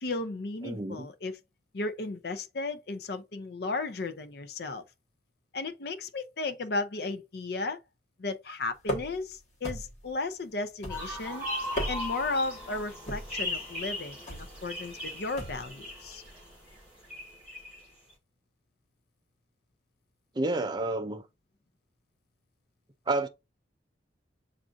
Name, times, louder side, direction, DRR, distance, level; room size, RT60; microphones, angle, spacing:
voice 1, 0.0-1.4 1.7-4.8 5.5-7.8 8.2-11.5 11.9-16.2, left 3 dB, 55° left, 0.5 m, -34 dB
voice 2, 0.6-1.1 20.4-21.2 23.1-23.3, right 2 dB, 20° right, 0.4 m, -29 dB
sound 1, 8.8-9.3 9.6-10.1 10.8-11.3 11.6-12.3 13.1-13.4 14.3-14.5 15.4-15.7, equal, 35° left, 1.5 m, -36 dB
sound 2, 10.9-17.8, left 1 dB, 5° right, 1.5 m, -38 dB
7.2 x 2.5 x 2.5 m
head